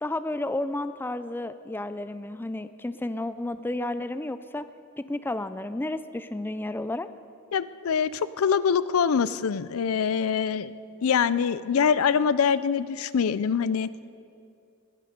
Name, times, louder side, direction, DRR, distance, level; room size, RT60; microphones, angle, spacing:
voice 1, 0.0-4.7 5.0-7.1, left 1 dB, 10° left, 12 dB, 0.3 m, -32 dB
voice 2, 7.5-10.7 11.0-13.9, left 6 dB, 75° left, 17 dB, 0.4 m, -24 dB
21.0 x 12.0 x 5.2 m, 2.5 s
head